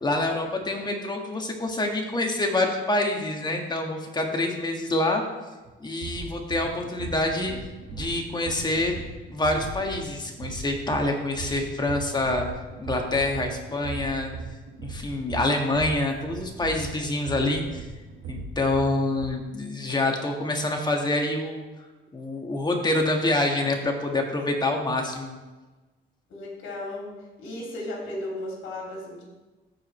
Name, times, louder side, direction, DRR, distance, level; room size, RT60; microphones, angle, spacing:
voice 1, 0.0-5.2 5.8-7.6 7.9-8.9 9.3-12.5 12.8-14.3 14.8-17.8 18.3-21.6 22.1-25.4, left 2 dB, 20° left, 2 dB, 1.6 m, -26 dB
voice 2, 4.4-4.8 26.3-27.1 27.4-29.2, left 1 dB, 75° left, -3 dB, 2.9 m, -35 dB
sound 1, 5.7-19.3, right 4 dB, 70° right, 1.1 m, -38 dB
14.5 x 5.0 x 3.2 m, 1.2 s
cardioid pair, 90°, 20 cm